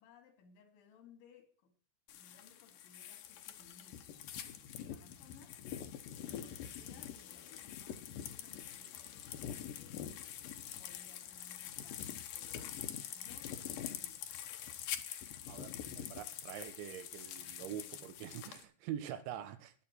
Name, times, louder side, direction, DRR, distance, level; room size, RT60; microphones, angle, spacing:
voice 1, 0.0-1.7 2.1-5.6 6.1-8.0 8.3-10.3 10.8-14.3 15.6-16.3 17.4-18.1, left 5 dB, 85° left, 4.9 m, -62 dB
sound 1, 2.1-18.6, left 10 dB, 70° left, 2.3 m, -45 dB
voice 2, 16.0-19.7, right 10 dB, 90° right, 3.6 m, -44 dB
14.5 x 10.5 x 4.5 m
omnidirectional pair, 5.2 m